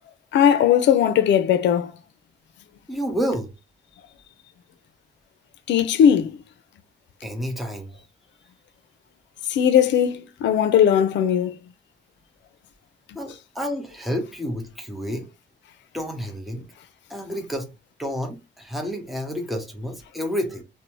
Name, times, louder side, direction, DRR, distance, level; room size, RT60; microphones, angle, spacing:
voice 1, 0.3-1.9 5.7-6.4 9.5-11.6, left 9 dB, 75° left, 0.4 m, -18 dB
voice 2, 2.9-3.5 7.2-7.9 13.1-15.3 15.9-16.6 17.1-17.7 18.0-20.6, equal, ahead, 0.7 m, -29 dB
2.6 x 2.1 x 2.9 m
cardioid pair, 105°, 19 cm